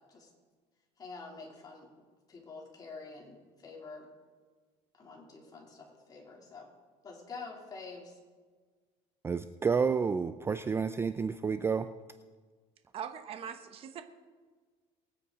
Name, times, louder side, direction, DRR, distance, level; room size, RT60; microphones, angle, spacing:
voice 1, 1.0-1.9 2.3-4.1 5.0-6.7 7.0-8.2, left 4 dB, 30° left, -1 dB, 3.1 m, -47 dB
voice 2, 9.2-11.9, right 5 dB, 20° right, 11 dB, 0.4 m, -30 dB
voice 3, 12.9-14.0, right 8 dB, 45° right, 8 dB, 1.0 m, -41 dB
23.0 x 8.4 x 3.9 m, 1.5 s
cardioid pair, 135°, 14 cm